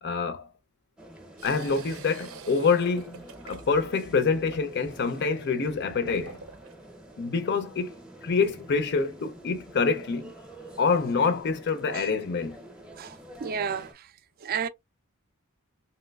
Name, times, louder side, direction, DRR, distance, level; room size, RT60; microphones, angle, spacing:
voice 1, 0.0-0.5 1.4-6.4 7.2-7.9 8.2-10.3 10.8-12.6, left 4 dB, 55° left, 0.4 m, -26 dB
sound 1, 1.0-13.9, right 1 dB, 5° right, 0.6 m, -48 dB
sound 2, 1.4-6.7, right 4 dB, 85° right, 0.6 m, -46 dB
voice 2, 13.0-14.1 14.4-14.7, right 7 dB, 45° right, 0.3 m, -32 dB
3.0 x 2.9 x 2.2 m
head